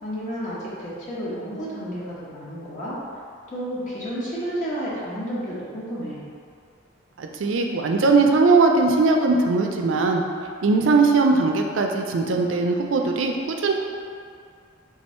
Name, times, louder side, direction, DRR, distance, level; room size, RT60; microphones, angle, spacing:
voice 1, 0.0-3.0 3.5-6.2, equal, 40° left, -8 dB, 0.9 m, -31 dB
voice 2, 7.2-10.2 10.6-13.7, right 3 dB, 70° right, 2 dB, 0.4 m, -20 dB
3.7 x 2.7 x 4.2 m, 2.3 s
head